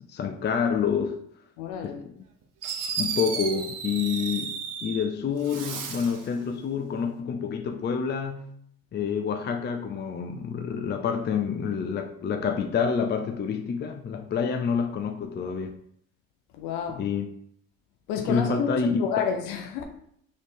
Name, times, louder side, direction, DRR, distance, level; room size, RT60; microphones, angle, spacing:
voice 1, 0.1-1.2 1.8-2.2 3.0-4.5 4.8-8.5 8.9-15.8 17.0-17.3 18.2-19.1, left 6 dB, 30° left, 0.4 m, -28 dB
voice 2, 1.6-2.0 16.6-17.0 18.1-18.7 19.0-19.8, left 7 dB, 85° left, 0.5 m, -29 dB
Fireworks, 2.2-2.3 2.6-5.1 5.4-6.3, right 6 dB, 60° right, 0.9 m, -33 dB
3.3 x 3.1 x 4.2 m
supercardioid pair, 70°, 35 cm